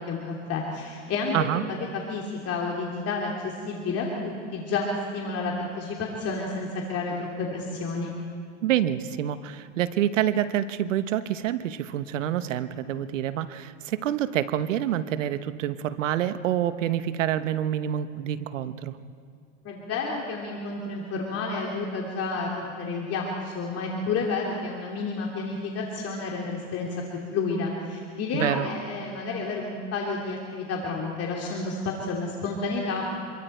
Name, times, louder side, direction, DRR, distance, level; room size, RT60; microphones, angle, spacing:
voice 1, 0.0-8.1 19.6-27.0 27.3-33.3, left 3 dB, 40° left, -1 dB, 2.9 m, -30 dB
voice 2, 8.6-19.0 28.3-28.7, right 11 dB, 90° right, 12 dB, 1.1 m, -27 dB
27.0 x 22.5 x 4.5 m, 2.3 s
supercardioid pair, 110°, 37 cm